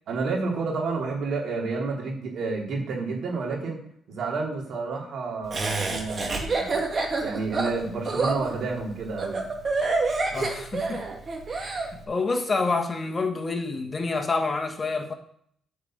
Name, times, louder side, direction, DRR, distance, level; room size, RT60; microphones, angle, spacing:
voice 1, 0.1-3.8 4.1-6.7 7.2-9.4, right 4 dB, 65° right, -1 dB, 3.4 m, -30 dB
Laughter, 5.5-11.9, right 3 dB, 40° right, 2.4 m, -27 dB
voice 2, 10.3-11.0 11.6-15.1, left 3 dB, 30° left, 4 dB, 1.4 m, -28 dB
9.3 x 5.2 x 7.7 m, 0.64 s
cardioid pair, 90°, 0 cm